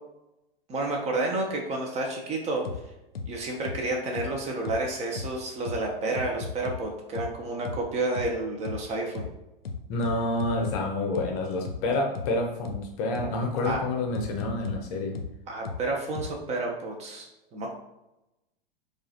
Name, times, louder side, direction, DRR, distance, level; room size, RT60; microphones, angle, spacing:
voice 1, 0.7-2.6 3.3-9.3 13.6-13.8 15.5-17.7, right 2 dB, 20° right, 1 dB, 0.7 m, -30 dB
sound 1, 2.6-2.8 3.1-3.3 3.6-3.8 4.1-4.3 4.6-4.8 5.1-5.3 5.6-5.8 6.1-6.8 7.1-7.3 7.6-7.8 8.1-8.3 8.6-8.8 9.1-9.3 9.6-10.8 11.1-11.3 11.6-11.8 12.1-12.3 12.6-12.8 13.1-13.3 13.6-13.8 14.1-14.8 15.1-15.3 15.6-15.8 16.1-16.3, left 5 dB, 80° left, 0.6 m, -34 dB
voice 2, 9.9-15.2, left 2 dB, 40° left, 2 dB, 0.7 m, -28 dB
4.6 x 2.4 x 2.8 m, 0.93 s
figure-of-eight pair, 100°, 29 cm